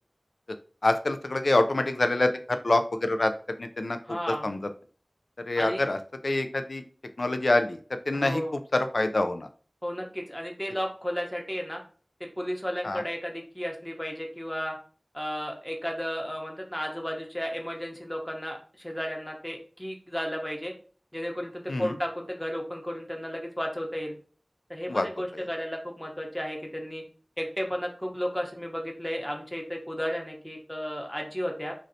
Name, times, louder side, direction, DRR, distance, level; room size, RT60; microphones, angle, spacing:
voice 1, 0.8-4.0 4.4-4.6 5.5-6.0 6.2-6.8 7.2-8.4 8.7-9.5 12.8-13.0 21.7-22.0 24.9-25.1, left 2 dB, 80° left, 8 dB, 0.3 m, -26 dB
voice 2, 4.0-4.5 5.6-5.8 8.1-8.5 9.8-11.8 12.2-14.8 15.1-20.7 21.1-24.2 24.7-27.0 27.4-31.7, equal, 10° left, 1 dB, 0.8 m, -33 dB
3.1 x 2.6 x 2.6 m, 0.41 s
wide cardioid pair, 50°, 0 cm